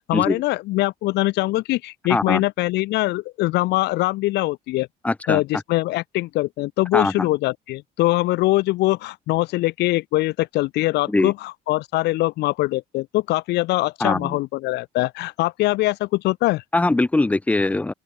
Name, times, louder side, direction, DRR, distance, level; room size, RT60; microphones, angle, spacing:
voice 1, 0.0-4.9 5.3-16.6, left 19 dB, 80° left, 0.9 m, -22 dB
voice 2, 2.1-2.4 5.0-5.4 6.9-7.3 11.1-11.3 14.0-14.4 16.7-17.9, left 2 dB, 10° left, 0.5 m, -21 dB
open air
cardioid pair, 110°, 17 cm